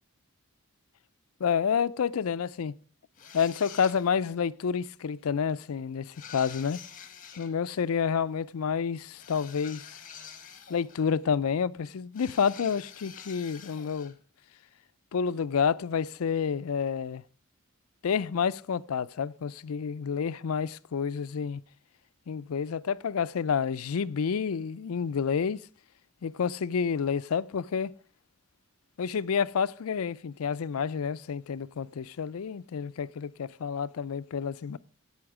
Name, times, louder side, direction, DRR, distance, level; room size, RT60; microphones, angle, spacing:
voice 1, 1.4-2.7 3.3-6.8 7.4-10.0 10.7-14.2 15.1-17.2 18.0-21.6 22.3-25.6 26.2-27.9 29.0-34.8, left 6 dB, 85° left, 0.4 m, -29 dB
sound 1, 3.2-4.3 6.1-7.5 9.1-11.2 12.1-14.2, left 7 dB, 40° left, 1.4 m, -47 dB
16.5 x 5.7 x 4.8 m
head